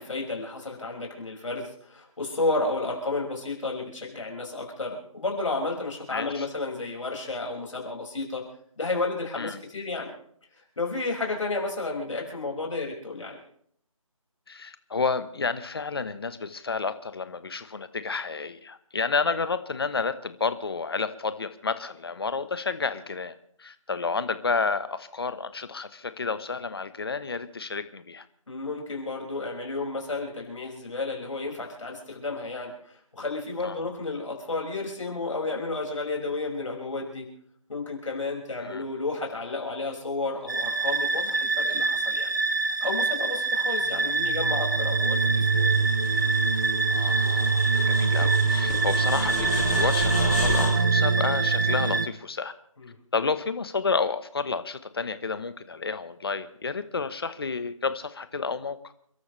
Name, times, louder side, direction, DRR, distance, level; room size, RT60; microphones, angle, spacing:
voice 1, 0.0-8.4 8.8-10.1 10.8-13.4 28.5-37.3 37.7-42.3 42.8-45.7 52.8-52.9, left 3 dB, 60° left, 0 dB, 5.8 m, -32 dB
voice 2, 6.1-6.4 9.4-9.6 14.5-28.2 33.6-33.7 38.6-38.8 46.9-52.5 53.1-58.8, left 4 dB, 45° left, 13 dB, 1.1 m, -30 dB
sound 1, 40.5-52.1, right 4 dB, 35° right, 0.8 m, -24 dB
sound 2, 45.0-50.7, left 3 dB, 10° left, 1.7 m, -34 dB
29.5 x 12.5 x 3.3 m, 0.63 s
figure-of-eight pair, 170°, 18 cm